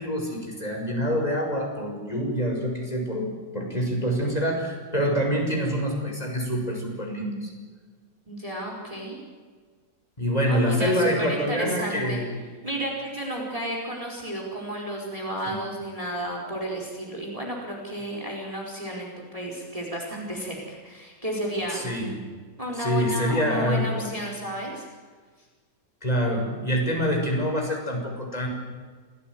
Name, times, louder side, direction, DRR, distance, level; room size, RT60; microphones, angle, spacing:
voice 1, 0.0-3.3 3.5-7.5 10.2-12.2 15.5-15.6 21.7-22.1 22.8-24.1 26.0-28.5, equal, 20° left, 0 dB, 6.2 m, -26 dB
voice 2, 8.3-9.2 10.5-12.2 12.6-21.9 22.6-24.8, right 1 dB, 20° right, 0 dB, 4.7 m, -32 dB
28.0 x 17.0 x 9.5 m, 1.5 s
omnidirectional pair, 1.9 m